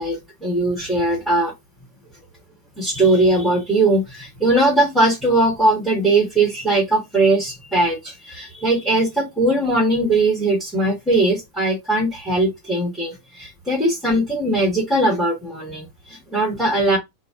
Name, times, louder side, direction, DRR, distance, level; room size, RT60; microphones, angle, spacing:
voice 1, 0.0-1.5 2.8-17.0, right 2 dB, ahead, 1.5 m, -20 dB
3.9 x 2.1 x 3.7 m
figure-of-eight pair, 90°, 0 cm